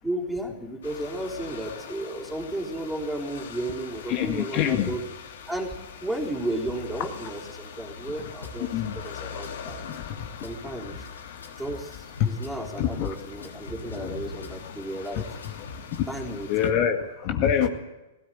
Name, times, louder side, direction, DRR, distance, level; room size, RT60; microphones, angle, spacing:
voice 1, 0.0-5.0 5.5-5.7 6.0-8.7 8.9-9.8 10.4-10.9 11.6-15.2 16.1-16.7, right 1 dB, 5° right, 0 dB, 3.9 m, -33 dB
sound 1, 0.8-16.7, left 6 dB, 65° left, 3.1 m, -42 dB
voice 2, 4.1-4.9 8.6-9.0 9.9-10.3 10.6-10.7 12.2-12.3 12.7-13.1 15.5-15.7 16.0-16.1 16.5-17.7, left 9 dB, 45° left, 5 dB, 2.0 m, -25 dB
Drum kit / Bass drum, 8.4-8.6 8.9-10.6 10.9-12.6 12.9-14.6 15.0-16.3, left 2 dB, 90° left, 4.8 m, -43 dB
17.5 x 17.0 x 9.3 m, 1.1 s
hypercardioid pair, 110°, 0 cm